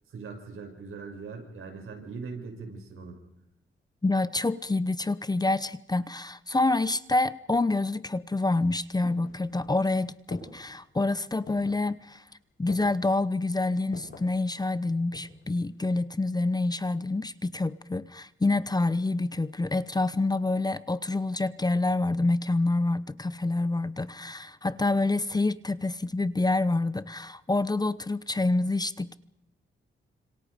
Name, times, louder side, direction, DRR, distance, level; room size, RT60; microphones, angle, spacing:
voice 1, 0.1-3.2, right 4 dB, 80° right, 6.7 m, -40 dB
voice 2, 4.0-12.2 12.6-29.1, left 2 dB, 20° left, 0.8 m, -27 dB
sound 1, 8.6-9.8 10.3-10.8 11.5-11.9 12.7-13.1 13.9-14.3 14.9-15.5 15.8-15.9, left 4 dB, 65° left, 8.0 m, -44 dB
29.5 x 26.5 x 5.1 m
cardioid pair, 100°, 21 cm